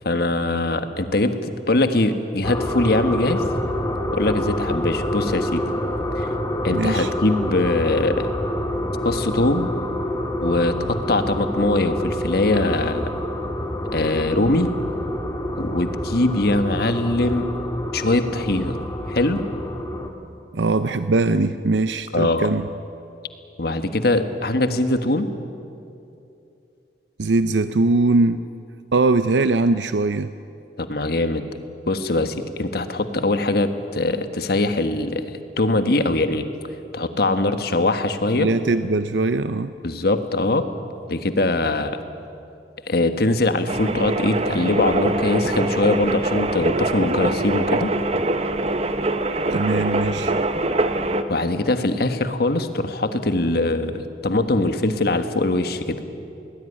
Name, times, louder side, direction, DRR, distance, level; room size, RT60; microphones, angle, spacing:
voice 1, 0.0-3.4 4.1-5.6 6.2-6.3 6.6-8.3 9.0-9.7 10.4-13.1 13.9-14.7 15.6-17.5 17.9-19.4 22.1-22.5 23.6-25.3 30.8-31.4 31.9-35.2 35.6-36.5 36.9-38.5 39.8-40.7 41.1-42.0 42.9-47.9 51.3-56.0, left 2 dB, 60° left, 9 dB, 1.5 m, -22 dB
sound 1, 2.4-20.1, left 1 dB, 20° left, 2.0 m, -27 dB
voice 2, 6.7-7.1 20.5-22.7 27.2-28.4 28.9-30.3 38.4-39.7 49.5-50.4, right 3 dB, 90° right, 11 dB, 0.6 m, -21 dB
sound 2, 43.7-51.2, right 2 dB, 35° right, 1.1 m, -23 dB
21.5 x 19.0 x 9.8 m, 2.6 s
head